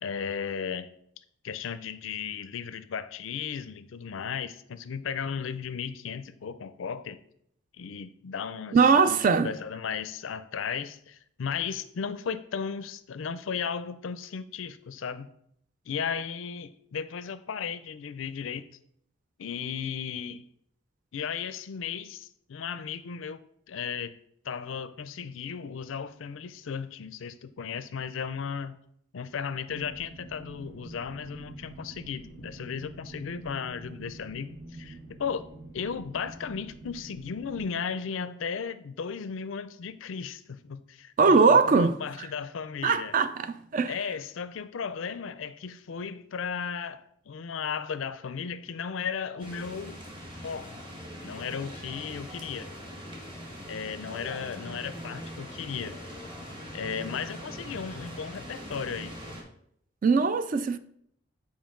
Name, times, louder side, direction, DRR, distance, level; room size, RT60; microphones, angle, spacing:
voice 1, 0.0-0.9 1.4-7.2 7.8-8.8 9.0-9.2 9.4-15.3 15.9-18.6 19.4-20.5 21.1-24.2 24.4-28.7 29.1-35.5 35.7-43.1 43.9-50.0 50.4-50.8 51.2-52.7 53.7-56.0 56.7-59.1, left 6 dB, 75° left, 0.4 m, -35 dB
voice 2, 8.7-9.5 41.2-42.0 42.8-43.9 60.0-60.8, right 5 dB, 40° right, 0.3 m, -21 dB
sound 1, 29.7-37.7, right 2 dB, 60° right, 1.0 m, -46 dB
sound 2, 49.4-59.4, equal, 25° right, 1.2 m, -42 dB
7.2 x 4.9 x 3.8 m
head